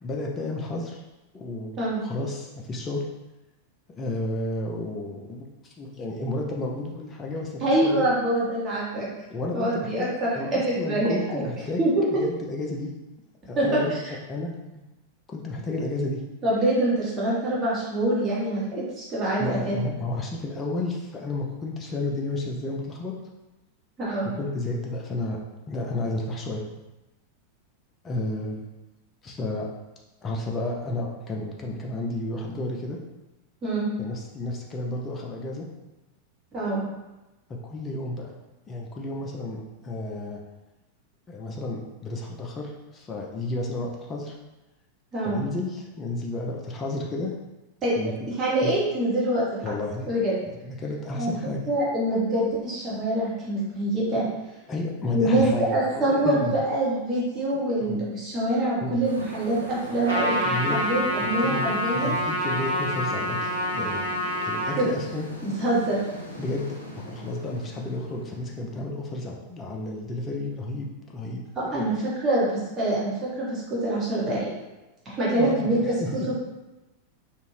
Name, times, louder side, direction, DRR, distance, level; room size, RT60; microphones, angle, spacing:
voice 1, 0.0-1.0 1.3-3.0 4.0-8.1 9.3-12.9 13.5-14.0 14.3-14.5 15.3-16.2 19.4-23.1 24.4-25.4 25.7-26.6 28.0-28.6 29.2-29.7 30.2-33.0 34.0-35.7 37.6-38.3 38.7-40.4 41.3-44.4 45.2-47.3 48.0-48.1 48.6-48.7 49.6-50.1 50.6-51.7 54.7-56.6 57.5-58.0 58.8-59.0 60.4-60.8 61.2-64.0 64.4-65.3 66.4-66.7 66.9-71.5 71.7-71.9 75.4-76.3, left 2 dB, 20° left, -1 dB, 0.4 m, -32 dB
voice 2, 7.6-9.1 9.5-11.1 11.8-12.0 13.6-13.8 16.4-19.8 24.0-24.3 33.6-33.9 36.5-36.8 45.1-45.4 47.8-48.0 48.4-49.6 50.0-50.3 51.1-51.3 51.7-54.3 55.1-55.4 55.7-62.1 64.8-64.9 65.4-66.0 71.5-72.0 72.2-74.5 75.0-75.8 76.3-76.4, right 1 dB, 25° right, -7 dB, 1.2 m, -25 dB
sound 1, 59.0-69.6, equal, 90° left, 0.5 m, -40 dB
Trumpet, 60.1-64.8, left 1 dB, 85° right, 1.1 m, -27 dB
2.6 x 2.4 x 3.1 m, 1.0 s
figure-of-eight pair, 90°, 0 cm